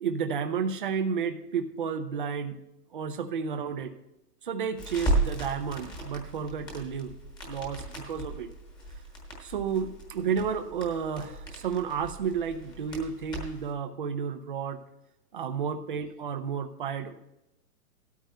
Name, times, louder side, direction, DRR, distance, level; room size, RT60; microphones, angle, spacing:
voice 1, 0.0-2.6 2.9-3.9 4.4-7.1 7.4-8.5 9.4-14.8 15.3-17.1, right 6 dB, 35° right, 8 dB, 0.5 m, -31 dB
Crackle, 4.8-13.7, right 2 dB, 10° left, 1.2 m, -35 dB
16.5 x 12.5 x 2.2 m, 0.91 s
hypercardioid pair, 155°, 48 cm